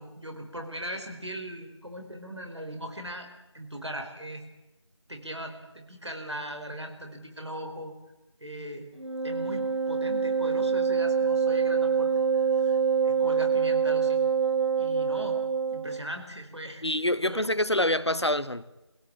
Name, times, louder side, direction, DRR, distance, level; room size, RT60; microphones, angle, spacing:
voice 1, 0.0-3.3 3.5-4.4 5.1-7.9 8.4-8.9 9.2-12.8 13.0-14.2 14.8-15.4 15.7-16.8 17.2-17.5, equal, 70° right, 4.4 m, -39 dB
Wind instrument woodwind instrument, 9.0-16.0, right 6 dB, 90° right, 1.3 m, -25 dB
voice 2, 16.8-18.6, left 1 dB, 70° left, 1.1 m, -26 dB
20.0 x 17.0 x 8.7 m
figure-of-eight pair, 180°, 15 cm